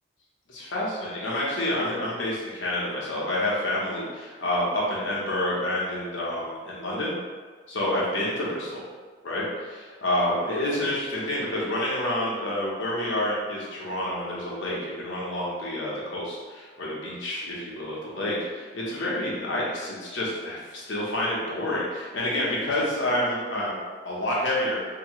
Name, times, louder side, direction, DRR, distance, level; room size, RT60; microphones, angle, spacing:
voice 1, 0.5-7.1 7.7-8.8 9.2-23.8 24.0-24.8, left 1 dB, 75° left, -5 dB, 1.0 m, -28 dB
3.6 x 3.0 x 3.1 m, 1.5 s
head